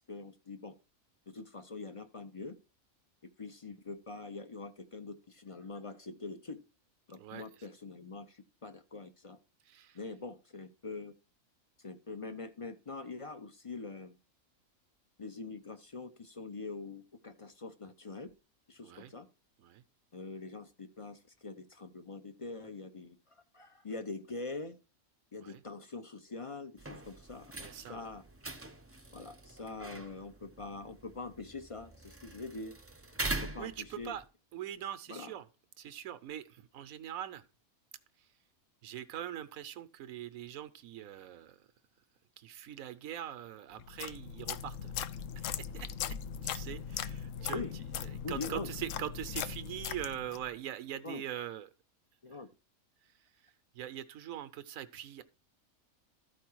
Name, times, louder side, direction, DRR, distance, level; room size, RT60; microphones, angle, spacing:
voice 1, 0.1-0.7 1.3-2.5 3.4-6.6 7.1-9.4 9.9-11.1 11.8-14.2 15.2-18.3 18.7-19.3 20.1-24.8 25.3-28.2 29.1-32.7 33.4-34.2 35.1-35.3 47.5-47.8 48.2-48.7 51.0-51.2 52.2-52.5, left 3 dB, 35° left, 0.5 m, -44 dB
voice 2, 7.1-7.7 9.6-10.1 18.8-19.1 19.6-19.8 25.4-25.6 27.6-28.0 33.2-34.2 34.5-35.5 35.8-37.4 38.8-41.7 42.4-44.9 45.4-45.9 46.4-51.7 53.0-53.1 53.7-55.2, right 11 dB, 70° right, 1.2 m, -43 dB
sound 1, 26.8-34.3, right 2 dB, 15° right, 0.5 m, -43 dB
sound 2, 43.8-50.5, left 8 dB, 70° left, 0.9 m, -39 dB
13.0 x 4.7 x 4.6 m
omnidirectional pair, 1.5 m